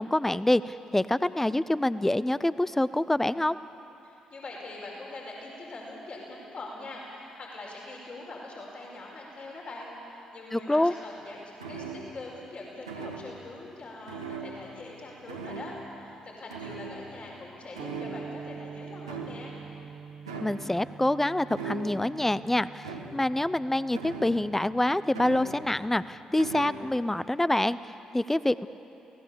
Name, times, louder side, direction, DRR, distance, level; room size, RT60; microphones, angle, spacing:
voice 1, 0.0-3.6 10.5-10.9 20.4-28.7, left 1 dB, 10° left, 16 dB, 0.7 m, -26 dB
voice 2, 4.0-19.5, left 2 dB, 45° left, -3 dB, 5.1 m, -43 dB
sound 1, 11.6-12.3 12.9-13.5 14.1-15.0 15.3-15.9 16.5-17.4 17.8-18.5 19.1-19.7 20.3-20.7 21.5-22.2 22.8-23.4 23.9-24.6 25.1-25.9 26.4-26.9, right 4 dB, 90° right, 1.6 m, -40 dB
sound 2, 17.8-26.2, right 5 dB, 45° right, 0.9 m, -46 dB
28.5 x 17.5 x 7.0 m, 3.0 s
figure-of-eight pair, 40°, 3 cm